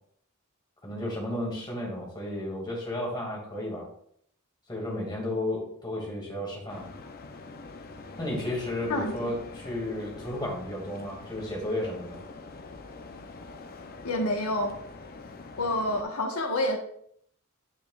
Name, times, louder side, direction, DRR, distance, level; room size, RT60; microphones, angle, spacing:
voice 1, 0.8-3.9 4.7-6.9 8.2-12.2, left 1 dB, 20° left, -3 dB, 2.3 m, -33 dB
sound 1, 6.7-16.0, left 3 dB, 45° left, 0.6 m, -45 dB
voice 2, 8.9-9.4 14.0-14.8 15.6-16.8, left 1 dB, 75° left, 3 dB, 1.3 m, -28 dB
9.4 x 5.1 x 2.4 m, 0.66 s
head